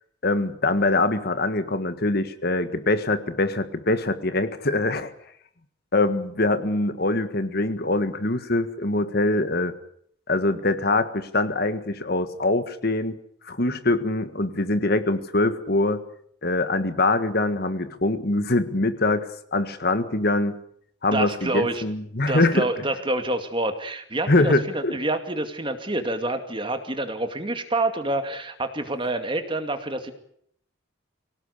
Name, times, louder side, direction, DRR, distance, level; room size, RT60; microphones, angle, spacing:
voice 1, 0.2-5.1 5.9-9.7 10.3-13.2 13.5-16.0 16.4-20.5 21.0-22.7 24.3-25.0, left 2 dB, 50° left, 10 dB, 1.7 m, -23 dB
voice 2, 21.1-21.8 22.3-30.1, right 2 dB, 25° right, 7 dB, 2.4 m, -27 dB
24.5 x 18.0 x 8.4 m, 0.67 s
head